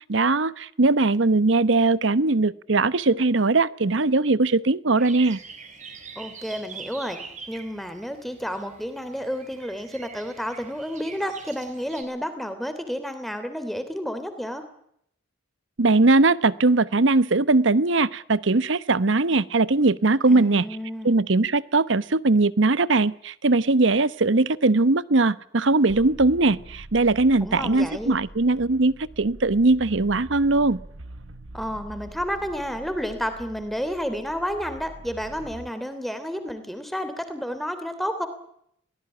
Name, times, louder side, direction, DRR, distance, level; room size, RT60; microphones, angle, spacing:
voice 1, 0.1-5.4 15.8-20.7 21.0-30.8, right 3 dB, 65° right, 18 dB, 0.9 m, -20 dB
sound 1, 5.0-12.0, right 5 dB, 35° right, 4.6 m, -44 dB
voice 2, 6.1-7.2 7.5-14.6 20.3-21.2 27.4-28.1 31.5-38.3, equal, ahead, 9 dB, 3.1 m, -31 dB
sound 2, 25.9-35.7, right 1 dB, 85° right, 1.4 m, -44 dB
24.0 x 18.0 x 10.0 m, 0.71 s
head